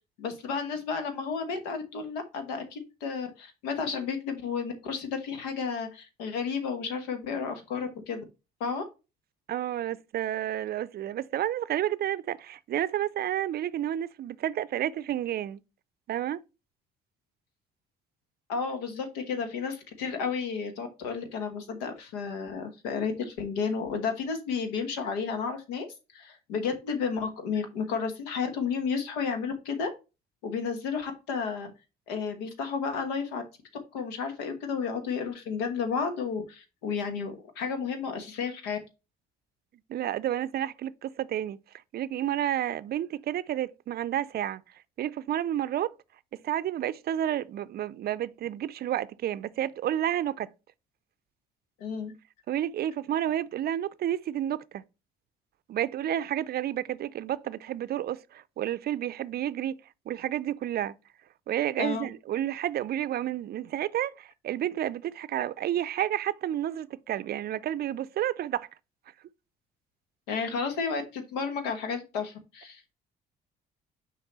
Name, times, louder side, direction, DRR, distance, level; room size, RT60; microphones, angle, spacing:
voice 1, 0.2-8.2 8.6-8.8 18.5-25.9 26.1-29.9 30.4-31.7 32.1-33.4 33.9-38.8 51.8-52.1 61.8-62.1 70.3-72.9, left 5 dB, 85° left, 1.2 m, -32 dB
voice 2, 9.5-15.6 16.1-16.4 39.9-41.6 41.9-44.6 45.0-45.9 46.4-50.5 52.5-54.8 55.7-59.8 60.1-60.9 61.5-68.7, right 11 dB, 50° right, 0.5 m, -30 dB
6.5 x 4.7 x 3.1 m
hypercardioid pair, 55°, 20 cm